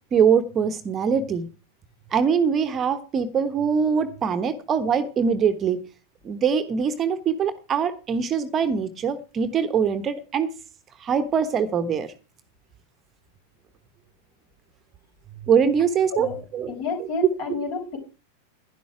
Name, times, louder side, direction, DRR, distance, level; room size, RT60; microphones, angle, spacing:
voice 1, 0.1-1.5 2.1-5.8 6.2-10.5 11.0-12.1 15.4-16.7, right 7 dB, 25° right, 11 dB, 1.2 m, -23 dB
voice 2, 16.7-18.0, left 4 dB, 45° left, 5 dB, 4.5 m, -30 dB
11.5 x 11.0 x 4.8 m, 0.32 s
figure-of-eight pair, 90°, 0 cm